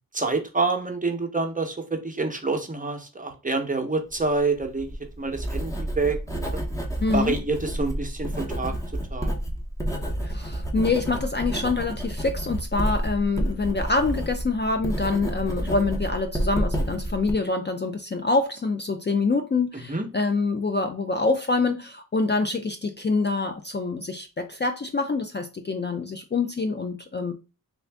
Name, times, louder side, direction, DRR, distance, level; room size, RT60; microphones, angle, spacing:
voice 1, 0.1-6.6 7.1-8.7 9.1-9.3 19.9-20.1, right 3 dB, 20° right, 0.7 m, -27 dB
Writing, 4.6-17.3, right 1 dB, 10° left, 0.8 m, -30 dB
voice 2, 7.0-7.4 10.2-27.3, left 3 dB, 30° left, 0.4 m, -26 dB
3.4 x 2.5 x 3.3 m
wide cardioid pair, 65°, 36 cm